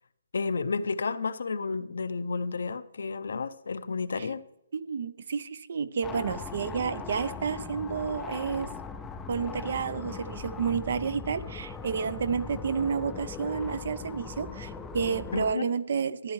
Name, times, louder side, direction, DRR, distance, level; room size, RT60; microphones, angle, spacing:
voice 1, 0.3-4.4 15.3-15.7, left 4 dB, 75° left, 0.6 m, -31 dB
voice 2, 4.7-8.7 9.3-16.3, right 6 dB, 55° right, 0.5 m, -30 dB
sound 1, 6.0-15.5, left 5 dB, 10° left, 0.4 m, -39 dB
13.5 x 10.0 x 3.1 m
hypercardioid pair, 160°, 0 cm